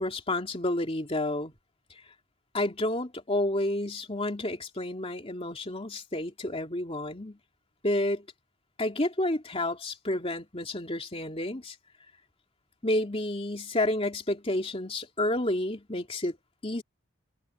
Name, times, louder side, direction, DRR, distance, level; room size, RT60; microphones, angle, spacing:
voice 1, 0.0-1.5 2.5-7.4 7.8-8.2 8.8-11.8 12.8-16.4 16.6-16.8, left 1 dB, 25° left, 2.9 m, -30 dB
head